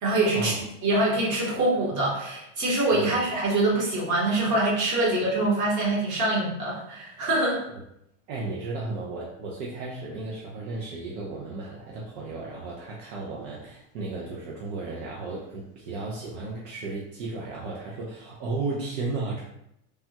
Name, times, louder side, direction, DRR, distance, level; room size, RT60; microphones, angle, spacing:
voice 1, 0.0-7.6, right 2 dB, 50° right, -4 dB, 1.4 m, -24 dB
voice 2, 2.9-3.3 8.3-19.4, right 3 dB, 80° right, -3 dB, 0.7 m, -34 dB
3.4 x 2.3 x 2.8 m, 0.79 s
supercardioid pair, 95°, 37 cm